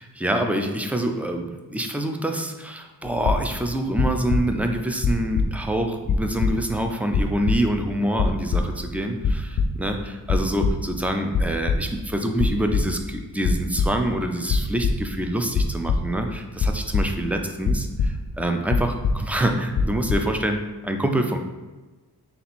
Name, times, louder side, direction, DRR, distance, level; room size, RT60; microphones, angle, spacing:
voice 1, 0.0-21.4, right 1 dB, 5° right, 4 dB, 0.4 m, -26 dB
sound 1, 3.0-3.7 4.0-4.7 5.0-5.8 6.0-6.8 7.1-7.9 8.2-8.9 9.2-10.0 10.3-10.9 11.2-12.1 12.4-13.1 13.4-14.2 14.5-15.1 15.5-17.4 17.7-18.4 18.7-19.5 19.7-20.1, left 4 dB, 65° left, 0.6 m, -24 dB
3.4 x 2.9 x 4.1 m, 1.2 s
wide cardioid pair, 65°, 40 cm